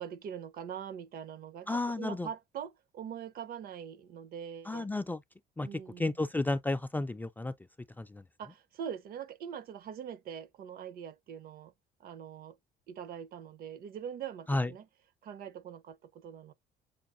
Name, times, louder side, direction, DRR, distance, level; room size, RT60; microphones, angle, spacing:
voice 1, 0.0-4.9 5.6-6.2 8.4-11.7 12.0-12.6 12.9-14.8 15.2-16.5, right 8 dB, 60° right, 0.7 m, -43 dB
voice 2, 1.7-2.3 4.7-5.2 5.6-5.7 6.0-7.5 8.0-8.2 14.5-14.7, left 2 dB, 10° left, 0.3 m, -32 dB
6.9 x 2.4 x 2.5 m
cardioid pair, 110°, 17 cm